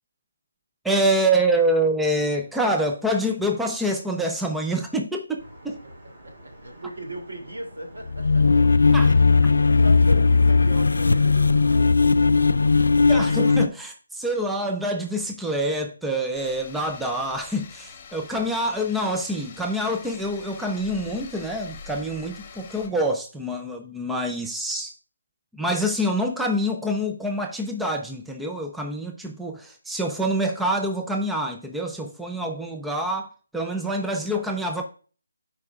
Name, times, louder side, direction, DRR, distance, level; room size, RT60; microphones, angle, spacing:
voice 1, 0.8-5.8 8.9-9.2 13.1-24.9 25.5-34.8, right 1 dB, 5° right, 0.5 m, -26 dB
sound 1, 5.4-11.8, equal, 40° right, 3.7 m, -48 dB
voice 2, 6.2-8.7 9.7-11.9, right 1 dB, 80° right, 2.8 m, -37 dB
sound 2, 8.1-13.7, left 4 dB, 80° left, 0.3 m, -18 dB
sound 3, 16.3-22.9, left 6 dB, 25° left, 1.0 m, -44 dB
11.5 x 4.9 x 2.4 m
figure-of-eight pair, 165°, 0 cm